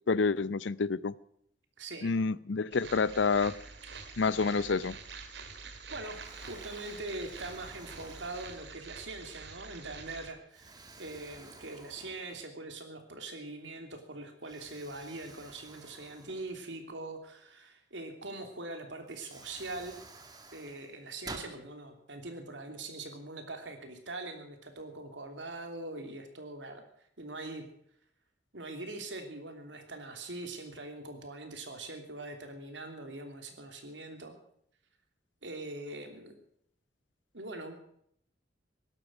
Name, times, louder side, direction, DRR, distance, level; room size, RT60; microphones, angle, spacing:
voice 1, 0.1-1.1 2.0-3.6 4.2-5.0, left 4 dB, 80° left, 20 dB, 0.6 m, -28 dB
voice 2, 1.8-2.1 5.6-6.2 6.5-20.0 20.5-26.8 27.2-27.6 28.5-34.4 35.4-36.4 37.3-37.7, right 2 dB, 80° right, 5 dB, 3.0 m, -42 dB
sound 1, 2.7-10.3, right 4 dB, 65° right, 2.2 m, -47 dB
Explosion, 5.5-5.9 6.2-9.0 9.6-9.8 10.5-12.8 13.1-13.2 14.4-17.1 18.5-18.6 19.1-21.6, right 3 dB, 20° right, 1.6 m, -51 dB
17.5 x 12.5 x 6.2 m, 0.69 s
head